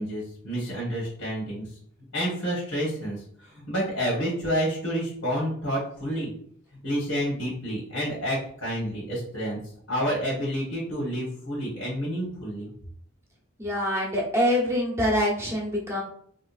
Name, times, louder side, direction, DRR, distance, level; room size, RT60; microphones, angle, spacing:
voice 1, 0.0-1.8 2.1-6.3 6.8-9.6 9.9-12.7, equal, 70° left, -5 dB, 1.3 m, -29 dB
voice 2, 13.6-16.0, equal, 15° right, -4 dB, 0.9 m, -25 dB
3.6 x 2.9 x 2.4 m, 0.63 s
head